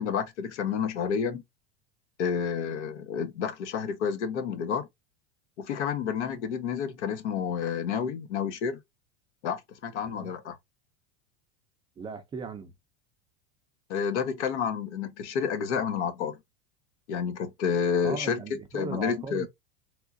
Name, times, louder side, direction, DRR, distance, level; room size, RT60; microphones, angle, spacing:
voice 1, 0.0-1.4 2.2-4.9 5.6-8.8 9.4-10.6 13.9-16.4 17.1-18.4 18.7-19.5, left 7 dB, 85° left, 1.1 m, -30 dB
voice 2, 12.0-12.7 18.0-19.5, right 4 dB, 15° right, 0.4 m, -37 dB
3.6 x 2.9 x 2.4 m
supercardioid pair, 145°, 34 cm